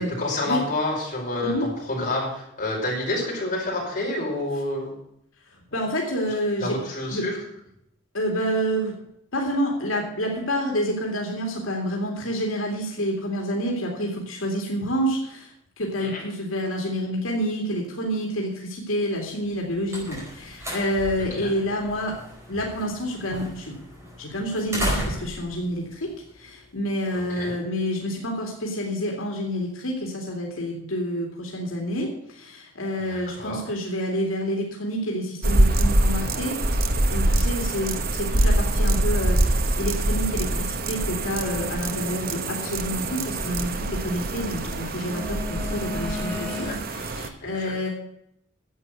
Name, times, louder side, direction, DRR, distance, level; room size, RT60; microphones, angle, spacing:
voice 1, 0.2-4.9 6.6-7.4 16.0-16.2 21.4-21.5 27.1-27.6 33.0-33.6 46.3-46.8 47.4-47.7, left 2 dB, 40° left, -4 dB, 5.3 m, -29 dB
voice 2, 5.7-6.8 7.1-7.3 8.1-8.9 9.3-22.2 22.5-23.8 24.2-47.9, equal, 85° left, 0 dB, 2.5 m, -28 dB
sound 1, 19.4-26.9, equal, 15° right, 4.7 m, -35 dB
sound 2, 35.4-47.3, right 1 dB, 45° right, 1.0 m, -24 dB
sound 3, 41.4-44.4 45.1-46.8, left 4 dB, 5° left, 1.8 m, -37 dB
11.0 x 8.0 x 8.0 m, 0.76 s
head